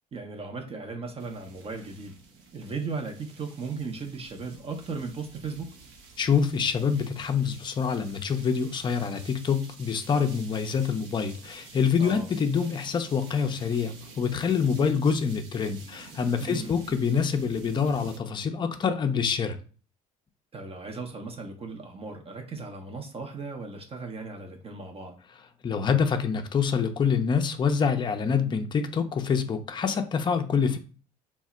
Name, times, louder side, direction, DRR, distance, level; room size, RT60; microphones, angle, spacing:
voice 1, 0.1-2.2 2.5-5.7 12.0-12.3 16.4-16.8 20.5-25.1, right 4 dB, 30° right, 0.6 m, -37 dB
sound 1, 1.2-18.2, right 4 dB, 70° right, 0.7 m, -49 dB
voice 2, 6.2-19.6 25.6-30.8, left 6 dB, 25° left, 0.4 m, -26 dB
2.1 x 2.0 x 3.7 m
hypercardioid pair, 65°, 18 cm